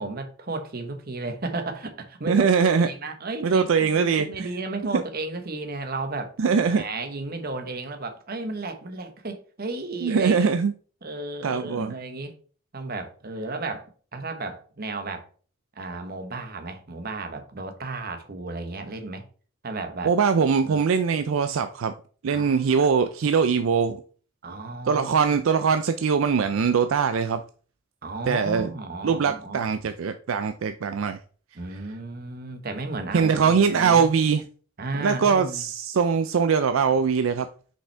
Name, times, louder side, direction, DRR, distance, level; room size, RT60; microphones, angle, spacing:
voice 1, 0.0-2.4 2.8-6.4 6.7-10.5 11.0-12.3 12.7-15.3 15.7-19.2 19.6-20.1 20.6-20.8 22.3-22.7 24.4-25.1 28.0-29.6 31.5-34.1 34.8-35.6, right 3 dB, 45° right, 1.1 m, -33 dB
voice 2, 2.3-2.9 3.4-4.5 4.9-5.0 6.4-6.8 10.0-10.7 11.4-11.9 20.0-21.9 22.2-24.0 24.9-27.4 28.3-28.7 29.0-31.2 33.1-34.4 35.0-37.5, right 6 dB, 75° right, 0.4 m, -22 dB
5.9 x 5.4 x 3.4 m
head